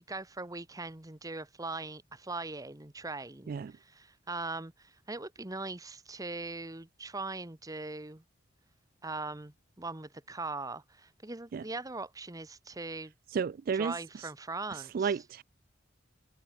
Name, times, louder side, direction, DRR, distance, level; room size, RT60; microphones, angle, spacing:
voice 1, 0.0-3.5 3.9-8.2 9.0-13.1 13.7-14.9, right 3 dB, 20° right, 1.1 m, -40 dB
voice 2, 3.5-3.8 11.5-11.7 13.3-14.3 14.7-15.4, right 6 dB, 50° right, 0.3 m, -33 dB
head